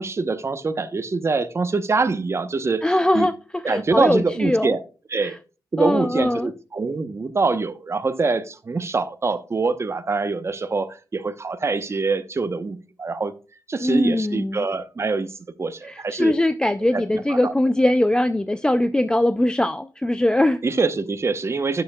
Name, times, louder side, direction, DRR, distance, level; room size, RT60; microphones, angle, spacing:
voice 1, 0.0-2.8 3.1-3.3 3.6-4.8 5.1-5.4 5.7-13.3 13.7-15.3 15.6-16.3 16.9-17.5 20.6-21.8, right 4 dB, 35° right, 0.9 m, -24 dB
voice 2, 2.8-4.7 5.2-5.3 5.8-6.5 13.8-14.6 15.9-20.6, left 1 dB, 10° left, 0.4 m, -21 dB
10.5 x 6.7 x 2.3 m
wide cardioid pair, 115°, 8 cm